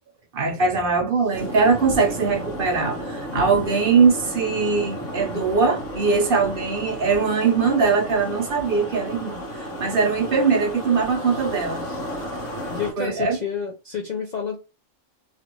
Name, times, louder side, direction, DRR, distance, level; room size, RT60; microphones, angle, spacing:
voice 1, 0.3-11.8 13.0-13.4, right 5 dB, 50° right, 0.8 m, -21 dB
sound 1, 1.3-12.9, equal, 75° left, 1.4 m, -33 dB
voice 2, 12.7-14.6, left 6 dB, 50° left, 0.5 m, -30 dB
3.2 x 2.5 x 3.0 m
omnidirectional pair, 1.4 m